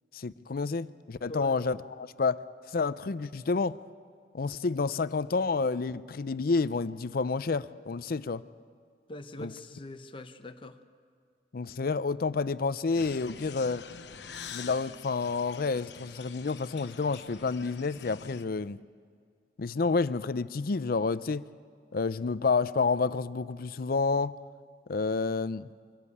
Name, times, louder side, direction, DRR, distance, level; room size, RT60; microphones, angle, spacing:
voice 1, 0.1-2.4 2.7-3.8 4.3-8.4 9.4-9.5 11.5-13.9 14.5-18.8 19.6-21.5 21.9-24.3 24.9-25.7, left 4 dB, 55° left, 0.5 m, -29 dB
voice 2, 1.3-1.7 9.1-10.8, left 1 dB, 30° left, 0.9 m, -42 dB
sound 1, 12.9-18.4, left 6 dB, 75° left, 1.0 m, -46 dB
24.5 x 16.5 x 8.4 m
head